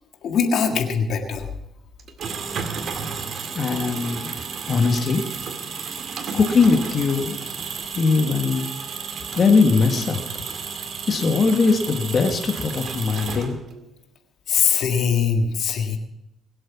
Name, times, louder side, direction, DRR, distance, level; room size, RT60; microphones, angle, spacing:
voice 1, 0.2-1.5 14.5-16.0, left 6 dB, 75° left, 4 dB, 1.7 m, -21 dB
sound 1, 2.0-13.8, right 5 dB, 60° right, 2.0 m, -32 dB
voice 2, 3.5-4.3 4.7-5.2 6.3-7.4 7.9-8.7 9.4-10.2 11.1-13.6, left 4 dB, 45° left, 4 dB, 1.6 m, -20 dB
21.5 x 7.8 x 6.0 m, 0.87 s
cardioid pair, 90°, 0 cm